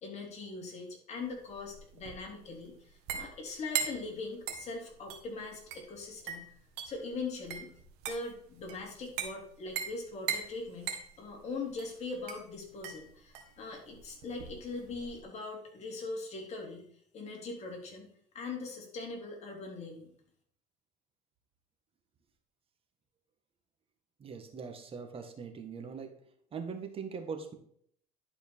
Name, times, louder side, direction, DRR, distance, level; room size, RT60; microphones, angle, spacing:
voice 1, 0.0-6.5 6.8-7.7 8.0-16.8 17.1-18.1 18.3-20.1, left 3 dB, 40° left, 0 dB, 3.3 m, -41 dB
sound 1, 1.3-15.2, right 8 dB, 80° right, 1.6 m, -41 dB
voice 2, 24.2-26.1 26.5-27.5, right 5 dB, 35° right, 5 dB, 1.6 m, -41 dB
11.0 x 4.9 x 4.5 m, 0.65 s
cardioid pair, 115°, 16 cm